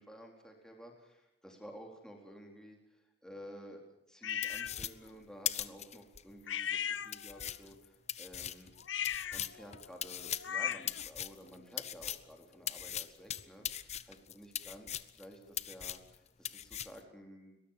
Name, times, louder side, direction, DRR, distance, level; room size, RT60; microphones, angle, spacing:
voice 1, 0.0-3.8 4.1-8.7 9.3-17.6, equal, 5° left, 1 dB, 4.1 m, -53 dB
sound 1, 4.2-4.7 6.5-7.5 8.8-11.0, left 9 dB, 70° left, 0.8 m, -38 dB
sound 2, 4.4-6.2 6.7-6.8 7.1-12.3 12.7-15.3 15.5-16.2 16.5-17.0, left 10 dB, 35° left, 0.8 m, -40 dB
22.5 x 20.5 x 7.5 m, 0.85 s
head